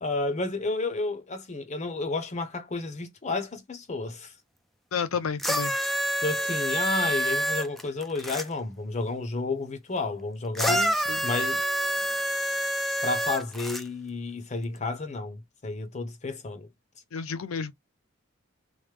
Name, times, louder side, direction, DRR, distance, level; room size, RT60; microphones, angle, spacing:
voice 1, 0.0-4.3 6.2-10.8 11.2-11.6 13.0-16.7, left 3 dB, 35° left, 0.7 m, -31 dB
voice 2, 4.9-5.7 10.7-11.2 17.1-17.7, left 6 dB, 90° left, 0.6 m, -31 dB
sound 1, 5.4-8.5 10.6-13.8 14.8-14.9, equal, ahead, 0.3 m, -27 dB
3.2 x 2.1 x 3.2 m
head